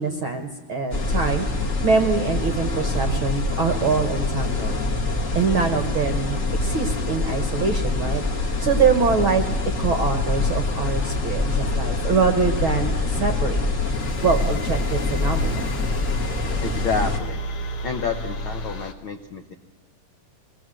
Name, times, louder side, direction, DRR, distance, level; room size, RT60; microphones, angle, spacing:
voice 1, 0.0-1.5 1.8-4.8 5.3-9.4 9.8-13.6 14.2-15.7, right 5 dB, 60° right, 7 dB, 1.4 m, -24 dB
sound 1, 0.9-17.2, left 2 dB, 35° left, 1.5 m, -25 dB
sound 2, 2.7-18.9, left 4 dB, 55° left, 2.4 m, -35 dB
voice 2, 16.6-17.4 17.8-19.5, left 4 dB, 70° left, 5 dB, 1.2 m, -29 dB
23.0 x 19.0 x 7.7 m, 1.3 s
omnidirectional pair, 3.9 m